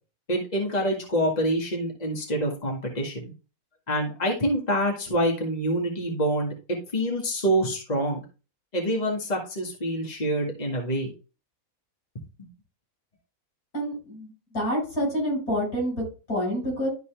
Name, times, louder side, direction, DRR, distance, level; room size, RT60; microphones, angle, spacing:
voice 1, 0.3-3.3 3.9-8.2 8.7-11.1, right 1 dB, 30° left, 0 dB, 1.9 m, -26 dB
voice 2, 13.7-16.9, equal, 85° left, -1 dB, 5.4 m, -28 dB
12.5 x 4.1 x 3.4 m, 0.32 s
omnidirectional pair, 1.5 m